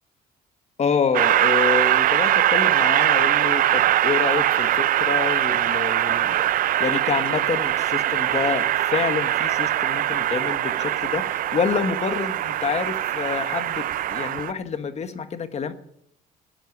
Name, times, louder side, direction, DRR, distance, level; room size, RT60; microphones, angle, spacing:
voice 1, 0.8-6.5 6.8-15.7, left 6 dB, 40° left, 10 dB, 1.4 m, -27 dB
Train, 1.1-14.5, right 13 dB, 55° right, 0.5 m, -22 dB
12.5 x 9.2 x 9.0 m, 0.73 s
cardioid pair, 110°, 17 cm